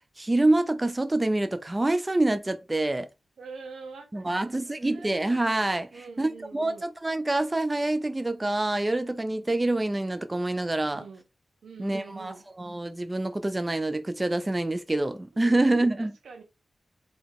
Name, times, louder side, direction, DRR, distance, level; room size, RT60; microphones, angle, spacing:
voice 1, 0.2-3.1 4.1-5.9 6.2-11.0 11.8-16.1, right 2 dB, 25° right, 0.5 m, -26 dB
voice 2, 3.4-5.1 5.9-6.9 10.9-11.2 11.6-12.4 15.4-15.5 16.0-16.4, right 4 dB, 90° right, 1.2 m, -45 dB
4.0 x 3.5 x 3.5 m
cardioid pair, 60°, 0 cm